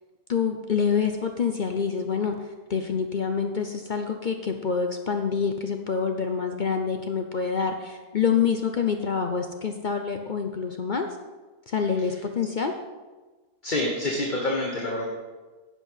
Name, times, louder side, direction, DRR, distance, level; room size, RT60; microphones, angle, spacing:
voice 1, 0.3-11.1 11.7-12.7, left 6 dB, 55° left, 5 dB, 0.5 m, -26 dB
voice 2, 13.6-15.0, left 1 dB, 35° left, 0 dB, 1.2 m, -27 dB
10.5 x 7.6 x 5.6 m, 1.3 s
omnidirectional pair, 1.7 m